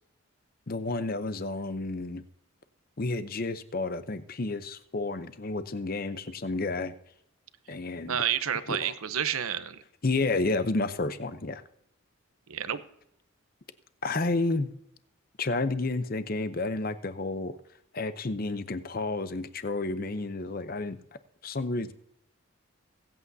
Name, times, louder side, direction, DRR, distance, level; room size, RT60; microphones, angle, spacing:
voice 1, 0.7-2.2 3.0-6.9 7.7-8.3 8.7-8.9 10.0-11.6 14.0-14.7 15.4-17.6 17.9-21.0 21.4-21.9, left 3 dB, 45° left, 12 dB, 0.7 m, -31 dB
voice 2, 8.1-9.8 12.5-12.8, right 9 dB, 85° right, 13 dB, 0.7 m, -30 dB
23.0 x 8.4 x 2.7 m, 0.76 s
head